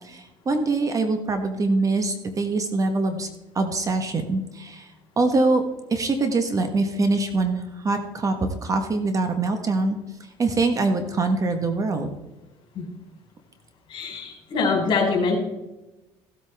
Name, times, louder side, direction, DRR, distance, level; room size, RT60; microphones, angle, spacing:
voice 1, 0.0-3.3 3.5-4.9 5.2-5.6 5.9-10.0 10.4-12.1, right 3 dB, 30° right, 7 dB, 1.4 m, -24 dB
voice 2, 13.9-15.4, left 4 dB, 50° left, 0 dB, 4.3 m, -24 dB
16.0 x 8.3 x 3.5 m, 1.0 s
supercardioid pair, 100°, 11 cm